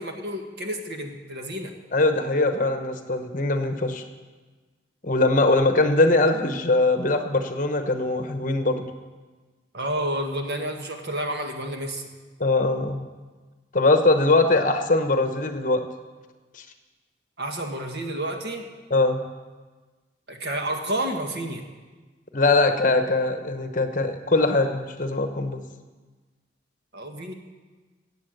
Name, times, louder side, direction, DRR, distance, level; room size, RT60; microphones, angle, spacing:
voice 1, 0.0-1.7 9.7-12.1 17.4-18.6 20.3-21.6 26.9-27.3, right 1 dB, 65° right, 3 dB, 1.7 m, -30 dB
voice 2, 1.9-4.0 5.0-8.9 12.4-13.1 13.7-15.8 18.9-19.2 22.3-25.6, left 2 dB, 45° left, 7 dB, 1.0 m, -21 dB
17.0 x 8.1 x 6.6 m, 1.3 s
head